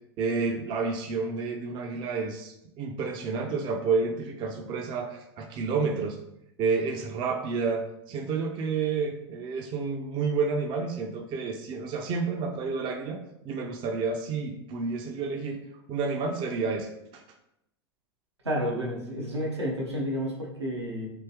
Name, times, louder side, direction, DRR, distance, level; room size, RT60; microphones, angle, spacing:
voice 1, 0.2-6.2 6.6-15.6 15.9-17.2, right 4 dB, 35° right, 4 dB, 0.5 m, -30 dB
voice 2, 18.4-21.1, equal, 90° right, -3 dB, 1.0 m, -30 dB
3.6 x 2.8 x 3.0 m, 0.80 s
figure-of-eight pair, 90°, 14 cm